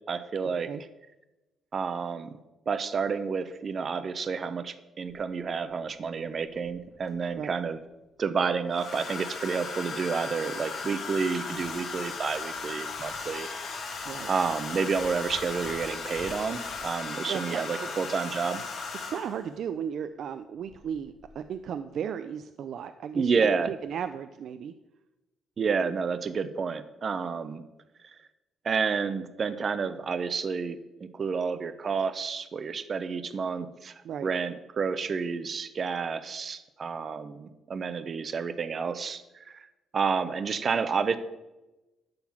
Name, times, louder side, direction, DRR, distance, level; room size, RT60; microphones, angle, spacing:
voice 1, 0.1-0.7 1.7-2.3 2.7-7.8 8.2-13.5 14.3-18.6 23.1-23.7 25.6-27.6 28.0-28.2 28.6-39.7 39.9-41.2, right 5 dB, 45° right, 11 dB, 0.8 m, -30 dB
Domestic sounds home sounds, 5.1-5.2 6.6-7.3 8.7-19.5 20.7-21.0 21.2-21.6, left 4 dB, 60° left, 1.5 m, -37 dB
voice 2, 17.3-17.9 19.1-24.7 34.0-34.3, right 8 dB, 70° right, 9 dB, 0.4 m, -35 dB
11.5 x 3.9 x 7.3 m, 1.0 s
cardioid pair, 90°, 0 cm